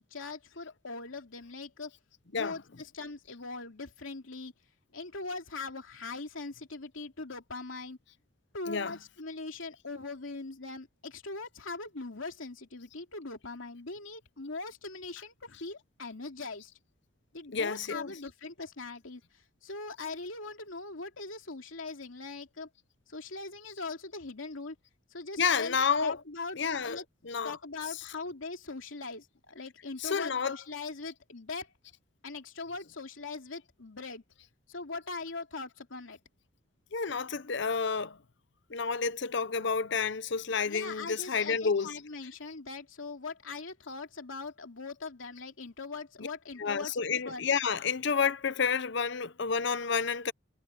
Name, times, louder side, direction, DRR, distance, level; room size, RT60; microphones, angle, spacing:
voice 1, 0.0-1.9 2.3-4.5 4.9-8.0 8.5-16.7 17.3-22.7 23.1-24.8 25.1-26.6 26.8-27.0 27.4-31.7 32.2-34.2 34.7-36.2 40.7-47.4, left 3 dB, 90° left, 2.7 m, -41 dB
voice 2, 8.7-9.0 17.5-18.1 25.4-26.2 26.5-27.0 27.2-27.6 30.0-30.6 36.9-38.2 38.7-41.9 46.6-50.3, left 5 dB, 60° left, 0.8 m, -30 dB
head